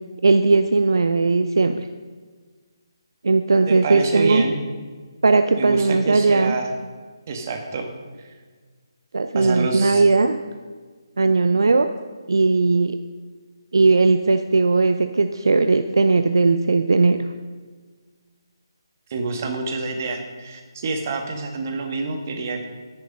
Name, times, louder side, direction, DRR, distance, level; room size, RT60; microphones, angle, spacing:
voice 1, 0.2-1.9 3.2-4.4 5.2-6.5 9.1-10.4 11.2-11.9 12.3-13.0 13.7-17.2, right 3 dB, 65° right, 9 dB, 0.5 m, -18 dB
voice 2, 3.7-4.6 5.5-6.7 7.3-7.9 9.3-10.0 19.1-22.6, right 3 dB, 35° right, 4 dB, 1.6 m, -27 dB
10.5 x 10.5 x 5.2 m, 1.5 s
figure-of-eight pair, 145°, 2 cm